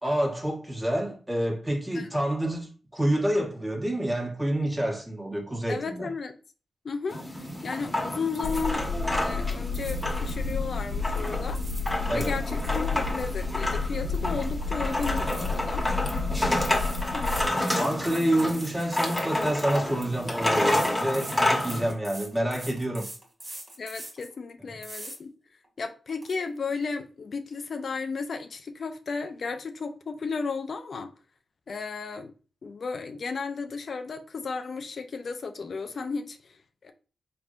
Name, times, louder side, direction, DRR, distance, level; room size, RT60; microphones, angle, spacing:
voice 1, 0.0-6.1 12.1-12.3 17.8-23.1, right 1 dB, 20° right, 1.4 m, -28 dB
voice 2, 5.7-6.3 6.8-7.2 7.6-8.9 9.1-11.6 12.1-15.9 17.1-17.4 17.7-17.9 23.8-25.3 25.8-31.1 31.7-32.3 32.6-36.9, left 4 dB, 60° left, 0.5 m, -34 dB
sound 1, 7.1-21.9, left 1 dB, 10° left, 1.2 m, -29 dB
sound 2, 8.3-8.9 9.7-10.2 11.3-11.9 12.3-14.1 14.4-14.7 15.3-15.9 16.7-19.8 20.7-24.3 24.8-25.2 25.6-25.7 26.1-26.4, right 1 dB, 50° right, 1.6 m, -43 dB
sound 3, 8.4-17.5, left 4 dB, 85° left, 1.2 m, -31 dB
4.1 x 3.4 x 2.4 m
cardioid pair, 65°, 0 cm